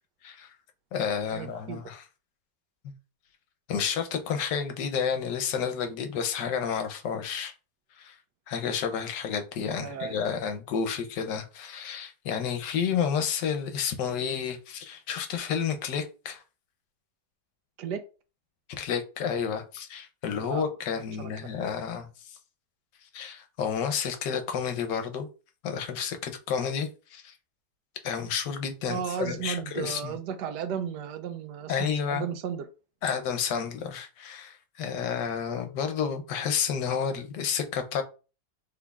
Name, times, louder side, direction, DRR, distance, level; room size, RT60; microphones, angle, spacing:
voice 1, 0.2-0.5 0.9-2.0 2.8-2.9 3.7-7.5 8.0-8.2 8.5-16.4 18.7-22.4 23.1-25.3 25.6-27.4 28.0-30.1 31.7-32.3 33.0-38.0, left 7 dB, 80° left, 1.3 m, -30 dB
voice 2, 1.3-1.8 9.8-10.1 17.8-18.0 20.3-20.7 21.2-21.3 28.9-32.7, right 8 dB, 75° right, 1.1 m, -34 dB
6.0 x 3.5 x 2.3 m
omnidirectional pair, 1.9 m